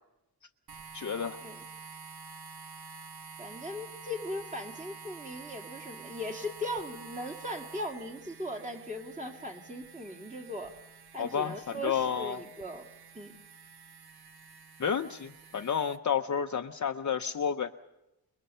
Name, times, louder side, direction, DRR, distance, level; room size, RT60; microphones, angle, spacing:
sound 1, 0.7-16.0, right 5 dB, 65° right, 1.0 m, -49 dB
voice 1, 0.9-1.4 11.2-12.4 14.8-17.7, left 7 dB, 45° left, 5 dB, 0.7 m, -31 dB
voice 2, 3.4-10.7 11.1-12.9 13.1-13.4, left 1 dB, 20° right, 3 dB, 2.4 m, -39 dB
27.5 x 22.0 x 5.6 m, 0.94 s
wide cardioid pair, 130°, 40 cm